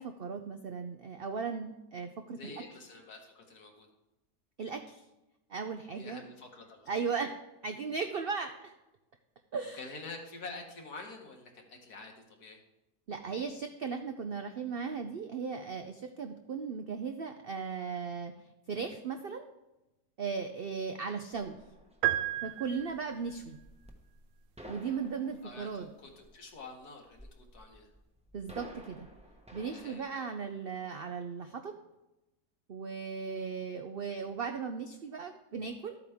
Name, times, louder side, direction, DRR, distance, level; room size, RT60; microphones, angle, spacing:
voice 1, 0.0-2.4 4.6-5.0 5.5-6.2 6.9-7.3 7.6-8.7 9.5-9.8 13.1-18.3 18.7-19.5 20.2-21.6 22.4-23.6 24.7-25.9 28.3-29.1 29.5-31.7 32.7-36.0, right 5 dB, 65° right, 6 dB, 0.5 m, -37 dB
voice 2, 2.4-3.9 5.9-6.9 9.7-12.6 25.4-27.9 29.7-30.4, left 3 dB, 70° left, 2 dB, 2.0 m, -47 dB
sound 1, 21.3-30.0, equal, 5° right, 0.8 m, -53 dB
sound 2, 22.0-23.3, right 14 dB, 85° right, 1.2 m, -32 dB
12.5 x 8.4 x 3.6 m, 0.97 s
omnidirectional pair, 1.7 m